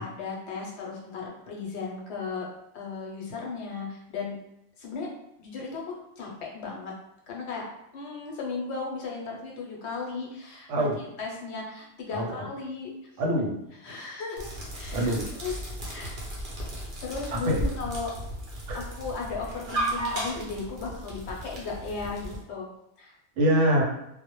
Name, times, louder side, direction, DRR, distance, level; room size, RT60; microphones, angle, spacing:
voice 1, 0.0-2.5 2.7-4.4 4.8-5.1 5.4-5.8 6.2-6.9 7.3-7.7 7.9-10.9 11.2-12.9 13.8-14.5 14.7-15.5 15.8-16.1 17.0-18.1 18.7-22.7 23.0-23.2, left 4 dB, 70° left, -1 dB, 0.8 m, -36 dB
voice 2, 13.2-13.6 14.9-15.3 17.3-17.6 18.7-18.8 23.4-23.8, right 1 dB, 85° right, 0 dB, 0.9 m, -24 dB
sound 1, 14.4-22.4, right 1 dB, 50° right, 0.7 m, -35 dB
2.1 x 2.0 x 2.9 m, 0.80 s
omnidirectional pair, 1.2 m